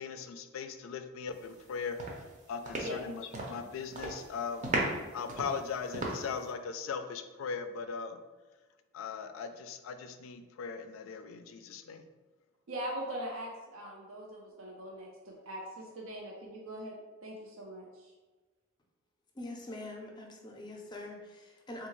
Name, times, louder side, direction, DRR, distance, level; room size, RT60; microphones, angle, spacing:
voice 1, 0.0-2.0 2.5-4.7 5.1-8.2 8.9-12.1, left 5 dB, 80° left, 8 dB, 0.3 m, -39 dB
sound 1, 1.5-1.7 2.0-3.6 3.9-4.3 4.6-6.5, right 1 dB, 35° right, 0.5 m, -35 dB
voice 2, 12.7-16.9 17.2-18.1, equal, 85° right, -1 dB, 0.5 m, -41 dB
voice 3, 19.3-21.9, left 1 dB, 20° left, 1 dB, 0.4 m, -44 dB
3.5 x 2.3 x 3.1 m, 1.2 s
head